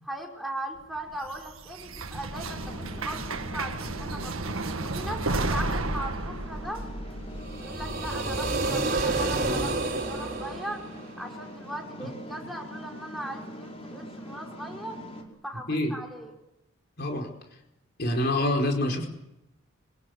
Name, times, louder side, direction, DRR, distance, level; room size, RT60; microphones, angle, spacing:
voice 1, 0.0-4.3 4.8-6.8 7.6-10.9 11.2-15.0 15.4-16.3, right 1 dB, ahead, 0 dB, 5.0 m, -39 dB
sound 1, 1.0-8.3, right 2 dB, 85° right, 1.7 m, -33 dB
sound 2, 2.3-15.2, equal, 30° left, 4.8 m, -43 dB
sound 3, 7.4-11.4, right 2 dB, 45° right, 4.9 m, -29 dB
voice 2, 17.0-17.3 18.0-19.1, left 1 dB, 50° left, 2 dB, 4.9 m, -26 dB
27.5 x 25.0 x 8.1 m, 0.88 s
head